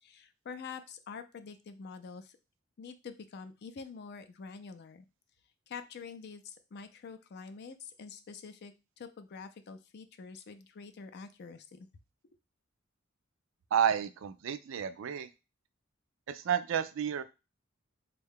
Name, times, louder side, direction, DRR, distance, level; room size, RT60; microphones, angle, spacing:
voice 1, 0.0-2.4 2.8-5.1 5.7-11.9, left 5 dB, 55° left, 9 dB, 0.4 m, -46 dB
voice 2, 13.7-15.3 16.3-17.2, right 8 dB, 70° right, 12 dB, 0.3 m, -31 dB
3.5 x 2.2 x 3.5 m, 0.28 s
head